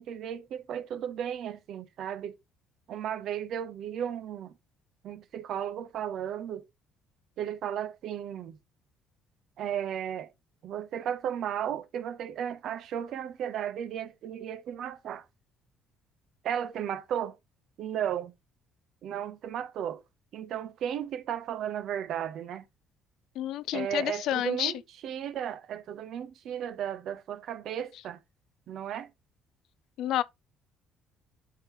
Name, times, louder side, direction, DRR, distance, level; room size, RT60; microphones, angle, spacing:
voice 1, 0.0-2.4 2.9-4.6 5.0-6.6 7.4-8.6 9.6-10.3 10.6-15.2 16.4-17.4 17.8-18.3 19.0-20.0 20.3-22.7 23.7-28.2 28.7-29.1, right 9 dB, 55° right, 0.9 m, -34 dB
voice 2, 23.4-24.7 30.0-30.2, left 12 dB, 65° left, 0.4 m, -29 dB
11.5 x 3.9 x 3.0 m
cardioid pair, 150°, 0 cm